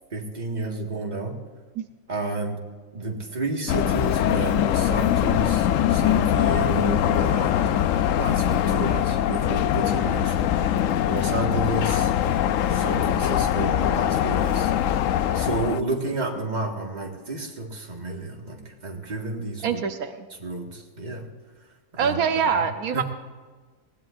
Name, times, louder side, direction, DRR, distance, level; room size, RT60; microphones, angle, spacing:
voice 1, 0.1-1.4 2.1-2.6 2.9-7.7 8.2-10.6 11.1-12.1 12.7-14.7 15.3-19.8 20.3-21.3 21.9-22.7 22.9-23.0, right 2 dB, 30° right, 1 dB, 1.8 m, -31 dB
sound 1, 3.7-15.8, left 10 dB, 70° left, 0.9 m, -22 dB
voice 2, 19.6-20.2 22.0-23.0, right 7 dB, 80° right, 7 dB, 1.3 m, -24 dB
20.0 x 17.0 x 2.6 m, 1.4 s
omnidirectional pair, 1.5 m